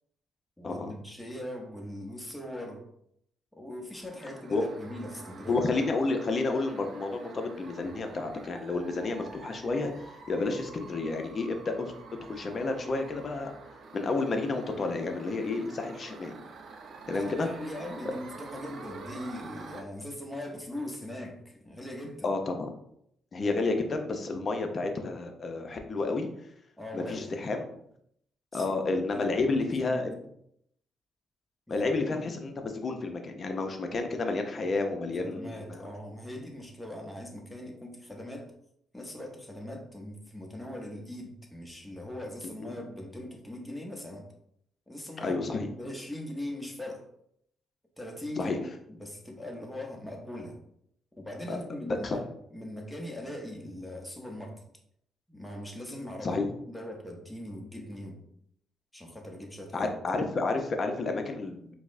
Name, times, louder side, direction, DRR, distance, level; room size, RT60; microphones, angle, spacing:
voice 1, 0.6-2.9 3.5-5.6 17.1-22.3 26.8-27.3 28.5-30.2 31.7-31.9 35.2-38.5 38.9-44.3 44.9-45.4 45.7-47.1 48.0-50.6 51.1-54.6 55.3-58.2 58.9-59.9, left 1 dB, 5° left, 0 dB, 0.8 m, -40 dB
sound 1, 3.9-19.8, right 4 dB, 60° right, 0.4 m, -48 dB
voice 2, 5.5-9.9 10.3-11.9 12.3-13.5 13.9-16.3 17.1-17.5 22.2-22.7 23.3-26.3 26.9-27.7 28.5-30.1 31.7-35.9 42.6-42.7 45.2-45.7 48.4-48.6 51.5-51.6 52.0-52.2 56.2-56.5 59.7-61.7, left 3 dB, 40° left, 5 dB, 0.6 m, -30 dB
4.6 x 2.0 x 2.5 m, 0.72 s
cardioid pair, 90°, 0 cm